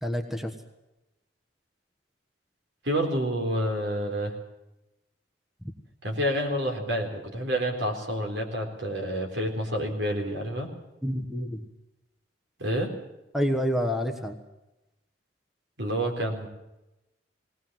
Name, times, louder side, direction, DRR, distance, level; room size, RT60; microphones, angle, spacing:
voice 1, 0.0-0.5 11.0-11.7 13.3-14.4, equal, ahead, 6 dB, 1.3 m, -28 dB
voice 2, 2.8-4.3 6.0-10.7 12.6-12.9 15.8-16.5, equal, 70° right, 3 dB, 4.2 m, -28 dB
20.0 x 18.5 x 7.7 m, 0.96 s
head